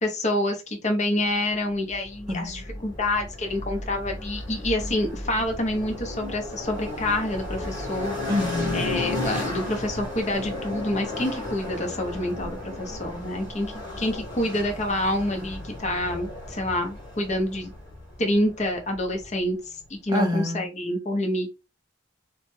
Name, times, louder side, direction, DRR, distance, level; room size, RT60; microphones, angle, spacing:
voice 1, 0.0-8.2 8.7-17.7 18.2-21.5, left 1 dB, 40° left, 0.7 m, -27 dB
sound 1, 1.9-19.3, left 1 dB, 20° left, 1.4 m, -34 dB
voice 2, 2.3-2.6 8.3-8.8 20.1-20.6, left 1 dB, 20° right, 0.6 m, -26 dB
3.1 x 2.1 x 3.1 m
head